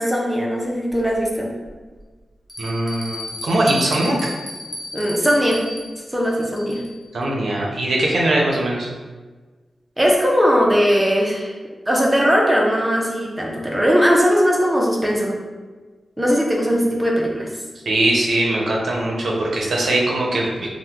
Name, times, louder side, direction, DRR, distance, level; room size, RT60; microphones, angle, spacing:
voice 1, 0.0-1.5 4.9-5.6 6.1-6.8 10.0-11.5 11.9-15.3 16.2-17.5, equal, 10° right, -2 dB, 0.5 m, -19 dB
Bell, 0.9-1.0 1.6-1.7 2.5-7.1, left 1 dB, 30° left, 0.6 m, -33 dB
voice 2, 2.6-4.1 7.1-8.9 17.9-20.7, right 1 dB, 65° right, -2 dB, 0.6 m, -21 dB
2.8 x 2.1 x 3.4 m, 1.3 s
wide cardioid pair, 165°, 0 cm